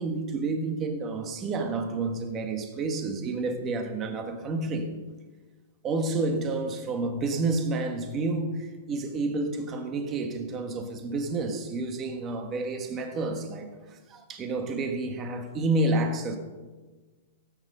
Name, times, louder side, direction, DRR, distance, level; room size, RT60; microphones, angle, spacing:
voice 1, 0.0-4.9 5.8-16.4, right 3 dB, 15° right, 1.3 m, -30 dB
17.0 x 9.0 x 5.4 m
hypercardioid pair, 175°, 0 cm